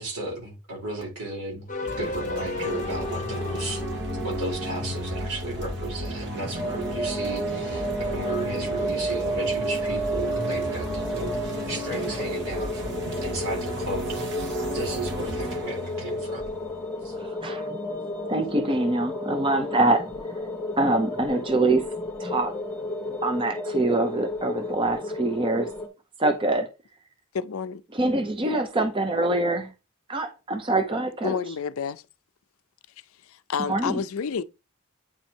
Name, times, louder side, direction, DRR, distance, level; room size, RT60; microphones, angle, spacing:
voice 1, 0.0-1.7 2.0-14.3 14.7-16.5 17.0-17.2, right 2 dB, 80° right, 4.0 m, -34 dB
sound 1, 1.7-4.9, left 3 dB, 35° left, 0.8 m, -34 dB
sound 2, 1.8-17.2, equal, 55° right, 1.6 m, -34 dB
sound 3, 6.5-25.9, equal, 10° left, 1.0 m, -32 dB
voice 2, 17.1-17.7 18.3-20.1 20.8-21.9 22.2-22.5 23.2-25.7 26.2-26.7 27.9-29.7 30.1-31.4 33.7-34.0, right 2 dB, 25° right, 0.6 m, -24 dB
voice 3, 27.3-27.8 31.2-32.0 33.3-34.4, left 6 dB, 65° left, 0.4 m, -29 dB
8.9 x 3.0 x 4.4 m
head